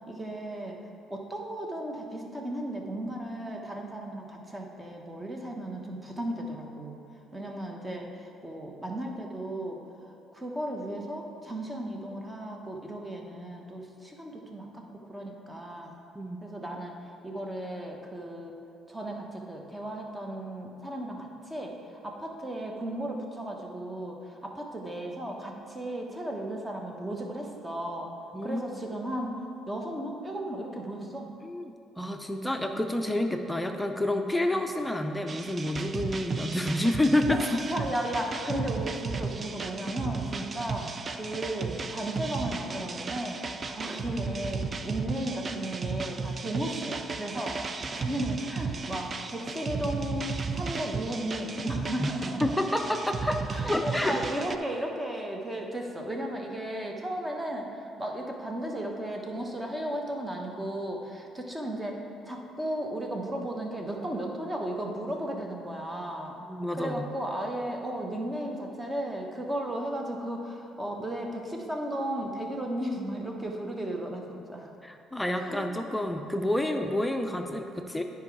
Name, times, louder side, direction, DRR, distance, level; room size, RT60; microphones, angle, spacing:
voice 1, 0.1-0.8 1.1-7.0 7.3-9.8 10.3-15.9 16.4-16.9 17.2-18.5 18.9-21.7 22.0-28.1 28.4-29.4 29.7-31.3 37.3-47.6 47.9-52.6 53.5-66.4 66.7-74.7 75.4-75.6, right 1 dB, 20° right, 1 dB, 1.3 m, -35 dB
voice 2, 31.4-37.6 52.0-54.2 66.5-67.1 74.8-78.0, left 1 dB, 10° left, 5 dB, 0.6 m, -29 dB
sound 1, 35.3-54.6, right 4 dB, 40° right, 0.5 m, -35 dB
9.7 x 4.7 x 4.8 m, 2.7 s
hypercardioid pair, 60°, 0 cm